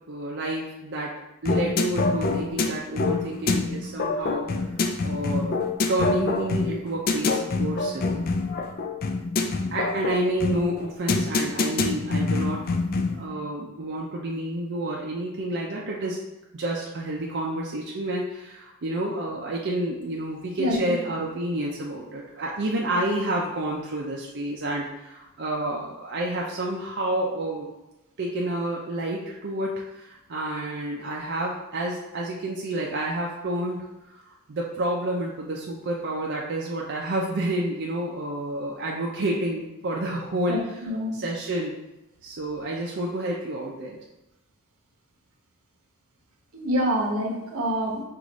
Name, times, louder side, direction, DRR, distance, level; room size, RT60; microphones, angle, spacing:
voice 1, 0.1-1.1 1.4-4.5 5.0-8.1 9.7-12.6 13.0-16.2 16.5-27.7 28.2-33.9 34.1-40.6 41.2-41.7 42.2-44.0, right 1 dB, 55° right, -3 dB, 0.5 m, -29 dB
sound 1, 1.4-13.3, left 3 dB, 45° left, 0.4 m, -26 dB
voice 2, 20.6-21.0 40.5-41.2 46.5-48.0, equal, 80° right, 0 dB, 1.0 m, -26 dB
4.8 x 2.5 x 3.9 m, 0.97 s
head